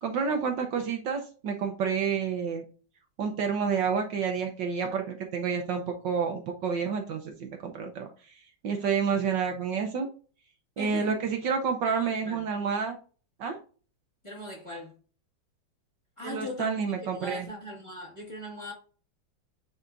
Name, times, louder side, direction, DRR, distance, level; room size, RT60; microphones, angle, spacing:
voice 1, 0.0-2.6 3.2-8.1 8.6-10.1 10.8-13.0 13.4-13.6 16.2-17.5, right 6 dB, 70° right, 1.4 m, -29 dB
voice 2, 10.8-11.3 11.8-12.4 14.2-15.0 16.2-18.7, left 1 dB, 15° left, 1.7 m, -40 dB
9.0 x 4.2 x 2.6 m
omnidirectional pair, 2.2 m